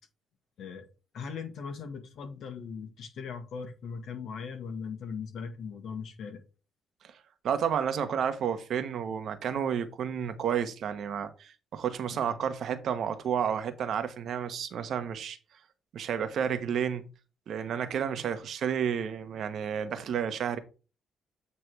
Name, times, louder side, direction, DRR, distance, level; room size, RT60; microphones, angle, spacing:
voice 1, 0.6-0.9 1.1-6.4 12.1-12.3, left 6 dB, 65° left, 1.4 m, -39 dB
voice 2, 7.4-15.4 15.9-17.0 17.5-20.6, right 8 dB, 65° right, 1.0 m, -31 dB
8.3 x 3.3 x 4.6 m
cardioid pair, 90°, 0 cm